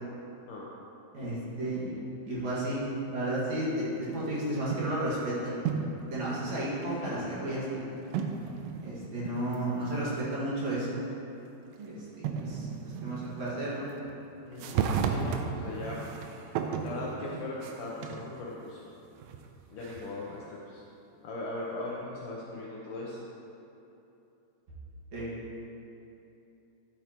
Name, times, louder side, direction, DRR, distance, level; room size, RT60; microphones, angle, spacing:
voice 1, 1.1-5.6 6.1-7.9 8.8-11.0 11.8-13.9 25.1-25.4, right 1 dB, 50° right, -8 dB, 2.6 m, -33 dB
sound 1, 4.2-5.1 5.5-6.1 6.8-6.9 8.1-10.1 10.4-10.5 11.7-11.8 12.2-14.1 14.5-18.3 18.8-20.4, right 6 dB, 85° right, 2.8 m, -34 dB
sound 2, 6.4-8.0, left 1 dB, 65° left, 3.0 m, -48 dB
voice 2, 14.5-16.0 16.8-18.8 19.7-20.8 21.2-23.2, left 2 dB, 90° left, -4 dB, 1.8 m, -39 dB
12.5 x 8.1 x 3.0 m, 2.9 s
omnidirectional pair, 4.8 m